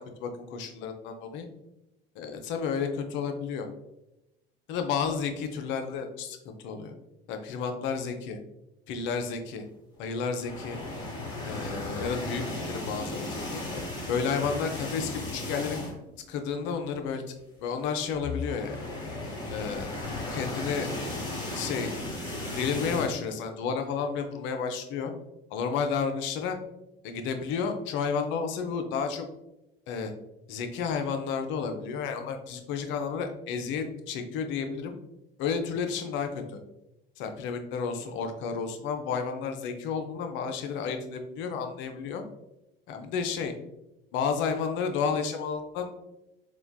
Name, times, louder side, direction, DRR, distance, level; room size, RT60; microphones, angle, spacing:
voice 1, 0.0-1.5 2.2-3.7 4.7-6.9 7.3-8.4 8.9-9.6 10.0-10.8 11.4-13.6 14.1-15.8 16.3-17.2 17.6-18.8 19.5-20.0 20.3-20.9 21.5-22.0 22.6-25.1 25.5-26.6 27.0-29.3 29.9-30.1 30.5-34.9 35.4-36.6 37.2-42.2 42.9-43.5 44.1-45.9, left 6 dB, 40° left, 5 dB, 0.5 m, -31 dB
sound 1, 10.4-16.1 16.5-16.7 17.0-17.1 18.1-23.1, left 2 dB, 15° left, 1.0 m, -35 dB
4.3 x 2.2 x 2.2 m, 0.91 s
figure-of-eight pair, 65°, 29 cm